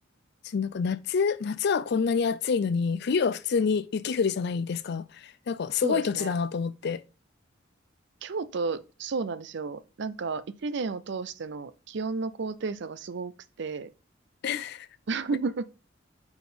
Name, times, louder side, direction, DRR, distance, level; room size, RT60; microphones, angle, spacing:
voice 1, 0.4-7.0 14.4-14.9, left 5 dB, 60° left, 0.4 m, -27 dB
voice 2, 5.8-6.3 8.2-13.3 13.6-13.9 15.1-15.7, right 4 dB, 65° right, 0.5 m, -32 dB
4.8 x 4.2 x 5.0 m
head